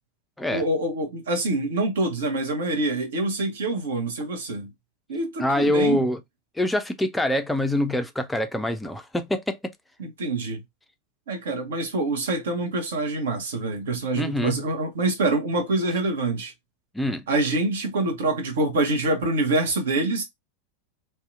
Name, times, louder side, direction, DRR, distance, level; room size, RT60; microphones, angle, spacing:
voice 1, 0.5-4.7 5.1-6.0 10.0-10.6 11.3-16.5 17.3-20.2, right 2 dB, 60° right, 0.8 m, -25 dB
voice 2, 5.4-6.2 6.6-9.7 14.1-14.6 16.9-17.2, left 1 dB, 5° left, 0.4 m, -25 dB
2.7 x 2.2 x 2.4 m
figure-of-eight pair, 90°, 0 cm